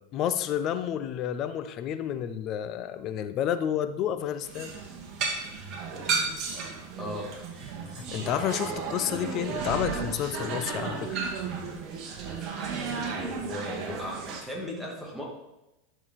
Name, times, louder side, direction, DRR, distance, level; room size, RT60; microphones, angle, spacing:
voice 1, 0.1-4.7 7.9-11.2, left 10 dB, 40° left, 12 dB, 0.7 m, -30 dB
sound 1, 4.4-14.4, right 5 dB, 40° right, 2.0 m, -33 dB
voice 2, 7.0-8.1 12.5-12.7 13.1-15.2, equal, ahead, -3 dB, 2.6 m, -38 dB
11.0 x 6.6 x 4.3 m, 0.96 s
supercardioid pair, 130°, 0 cm